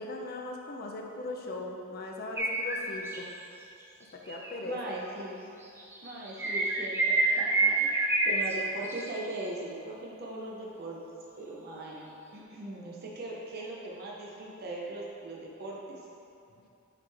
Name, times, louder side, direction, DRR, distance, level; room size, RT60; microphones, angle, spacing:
voice 1, 0.0-3.3 4.1-4.8 16.6-16.7, left 2 dB, 45° left, 0 dB, 0.6 m, -39 dB
sound 1, 2.4-3.2 4.3-4.5 5.8-8.5 8.8-9.1, right 2 dB, 10° right, 0.5 m, -27 dB
voice 2, 4.6-5.5 6.0-11.0 11.4-15.8, right 2 dB, 50° right, -4 dB, 0.8 m, -40 dB
8.3 x 3.6 x 3.4 m, 2.7 s
head